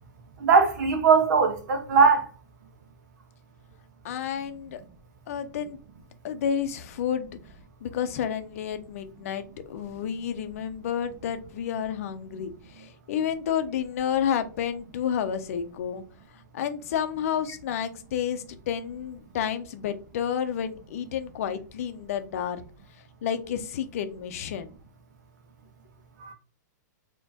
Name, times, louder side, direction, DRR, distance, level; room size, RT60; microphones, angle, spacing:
voice 1, 0.4-2.3 26.2-26.3, right 5 dB, 65° right, 1.1 m, -20 dB
voice 2, 4.0-4.8 5.3-5.8 6.2-7.3 7.8-16.0 16.3-22.6 23.2-24.8, left 8 dB, 50° left, 0.6 m, -30 dB
4.3 x 3.0 x 2.8 m
hypercardioid pair, 170°, 10 cm